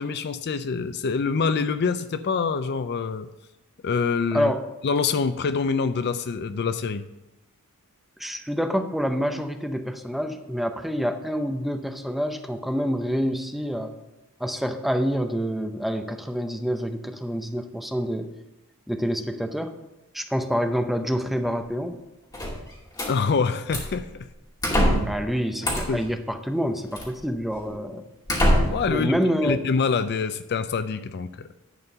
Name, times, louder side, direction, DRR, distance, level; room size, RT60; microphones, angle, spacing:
voice 1, 0.0-3.3 3.8-4.5 4.8-7.0 23.1-24.3 25.9-26.0 28.7-29.1 29.4-31.5, left 5 dB, 50° left, 12 dB, 0.4 m, -25 dB
voice 2, 4.3-4.7 8.2-13.9 14.4-18.3 18.9-19.7 20.1-22.0 25.0-28.0 28.9-29.7, equal, ahead, 6 dB, 0.6 m, -27 dB
sound 1, 22.3-23.1 23.7-24.0 24.6-25.2 25.6-26.1 27.0-27.1 27.7-27.8 28.3-28.9, equal, 20° left, 2.4 m, -23 dB
11.0 x 4.5 x 6.7 m, 0.98 s
head